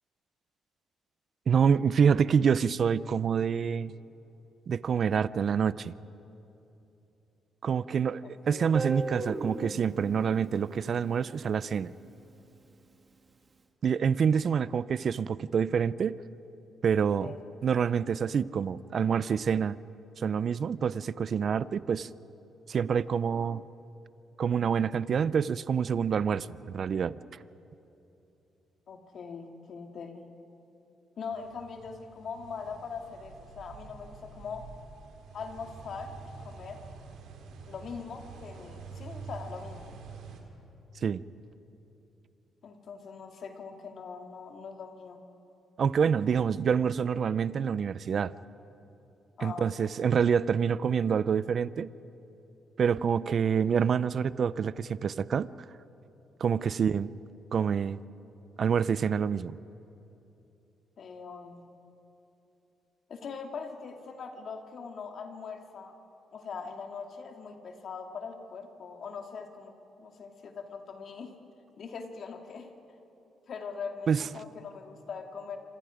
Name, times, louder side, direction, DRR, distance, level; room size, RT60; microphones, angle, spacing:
voice 1, 1.5-3.9 4.7-5.9 7.6-11.9 13.8-16.2 16.8-17.3 17.6-19.8 20.2-22.1 22.7-23.6 24.4-27.2 41.0-41.2 45.8-48.3 49.4-51.9 52.8-55.5 56.4-57.1 57.5-58.0 58.6-59.6 74.1-74.2, right 7 dB, 55° right, 17 dB, 0.5 m, -27 dB
voice 2, 8.2-8.7 17.2-17.4 28.9-30.3 31.2-34.7 35.3-36.8 37.7-39.9 42.6-45.3 49.4-49.7 56.6-56.7 61.0-61.7 63.1-66.0 66.3-71.3 71.8-72.7 73.5-75.6, left 5 dB, 60° left, 4 dB, 2.3 m, -41 dB
Guitar, 8.7-11.7, right 3 dB, 30° right, 1.9 m, -37 dB
sound 1, 31.3-40.4, right 4 dB, 85° right, 3.1 m, -47 dB
26.5 x 26.0 x 5.1 m, 3.0 s
cardioid pair, 90°, 0 cm